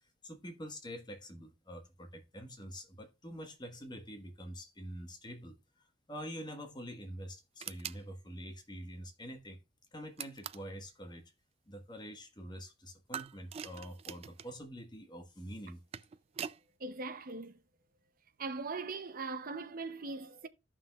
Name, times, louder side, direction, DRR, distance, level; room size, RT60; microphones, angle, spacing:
voice 1, 0.2-9.6 9.9-11.3 11.7-15.8, equal, 25° left, 1.3 m, -46 dB
sound 1, 7.6-8.0 10.2-10.7 13.1-14.5 15.6-16.6, right 8 dB, 35° right, 0.3 m, -43 dB
voice 2, 16.8-17.6 18.4-20.5, right 3 dB, 50° right, 0.7 m, -40 dB
14.5 x 5.8 x 2.3 m
head